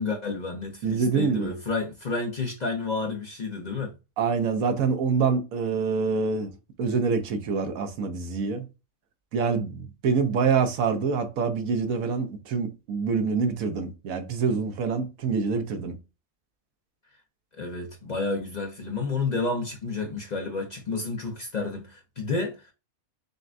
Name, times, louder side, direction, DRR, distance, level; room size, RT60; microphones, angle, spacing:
voice 1, 0.0-3.9 17.6-22.7, left 3 dB, 40° left, 0.7 m, -30 dB
voice 2, 0.8-1.6 4.2-6.5 6.8-8.7 9.3-15.9, right 5 dB, 85° right, 1.2 m, -26 dB
6.5 x 2.2 x 2.5 m
omnidirectional pair, 1.4 m